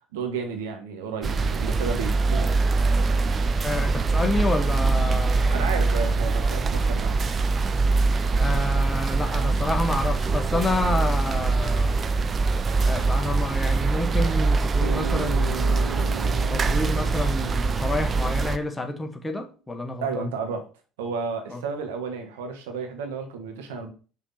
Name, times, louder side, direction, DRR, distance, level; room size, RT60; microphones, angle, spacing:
voice 1, 0.1-2.6 5.5-7.2 20.0-20.6 21.0-23.9, right 5 dB, 75° right, 1.3 m, -32 dB
sound 1, 1.2-18.6, right 3 dB, 35° right, 0.6 m, -23 dB
voice 2, 3.6-5.7 8.3-12.0 12.8-20.3 21.5-21.6, left 2 dB, 15° left, 1.4 m, -29 dB
Bass guitar, 14.8-18.9, right 5 dB, 90° right, 0.4 m, -38 dB
5.9 x 5.6 x 4.1 m
figure-of-eight pair, 60°, 0 cm